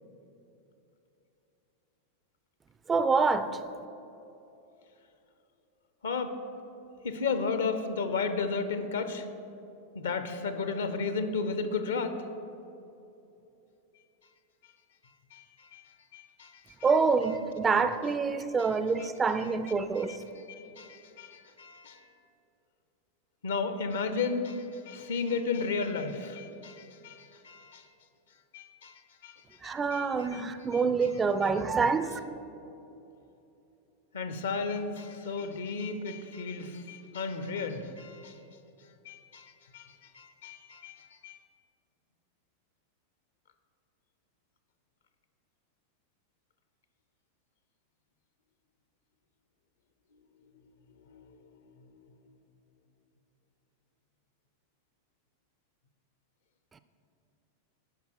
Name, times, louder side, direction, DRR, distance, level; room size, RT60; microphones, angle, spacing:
voice 1, 2.9-3.6 16.8-20.2 29.6-32.2, right 4 dB, 20° right, 0.3 m, -26 dB
voice 2, 6.0-6.3 7.0-9.3 9.9-12.2 15.3-15.8 16.1-16.6 18.6-18.7 19.9-20.2 20.6-22.1 23.4-27.9 28.5-30.4 30.7-31.1 34.1-38.4 39.0-41.4 51.0-51.3, left 4 dB, 65° left, 0.6 m, -34 dB
10.5 x 5.5 x 4.6 m
figure-of-eight pair, 90°, 0 cm